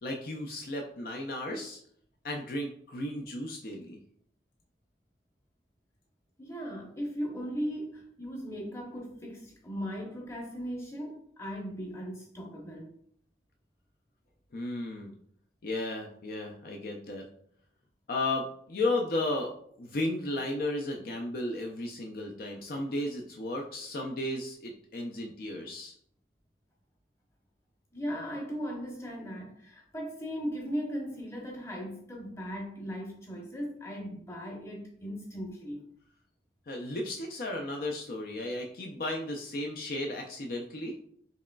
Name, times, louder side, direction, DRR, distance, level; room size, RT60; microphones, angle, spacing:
voice 1, 0.0-1.8 2.2-4.0 14.5-15.1 15.6-17.2 18.1-19.5 19.8-25.9 36.7-40.9, left 2 dB, 55° left, 1 dB, 0.4 m, -34 dB
voice 2, 6.4-12.9 27.9-35.8, equal, 15° left, -2 dB, 0.8 m, -38 dB
4.8 x 3.0 x 2.2 m, 0.64 s
head